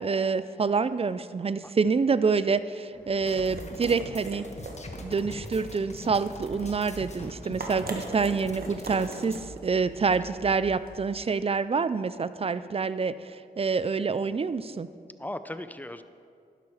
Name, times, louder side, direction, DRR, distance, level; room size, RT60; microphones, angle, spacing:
voice 1, 0.0-4.5 5.0-14.9, right 5 dB, 35° right, 14 dB, 0.5 m, -27 dB
sound 1, 3.0-11.2, right 3 dB, 65° right, 1.5 m, -42 dB
sound 2, 3.2-9.4, left 2 dB, 45° left, 1.4 m, -42 dB
voice 2, 15.2-16.0, left 1 dB, 10° left, 11 dB, 0.6 m, -39 dB
11.5 x 11.0 x 4.9 m, 2.3 s
cardioid pair, 70°, 16 cm